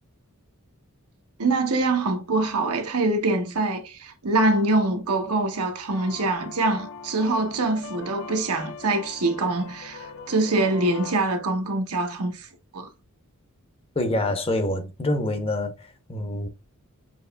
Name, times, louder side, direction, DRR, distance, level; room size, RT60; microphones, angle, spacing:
voice 1, 1.4-12.5 12.7-12.9, right 2 dB, 75° right, 0.9 m, -24 dB
sound 1, 5.9-11.1, left 4 dB, 60° left, 0.7 m, -41 dB
voice 2, 14.0-16.5, left 1 dB, 25° left, 0.7 m, -26 dB
6.9 x 2.9 x 2.2 m
head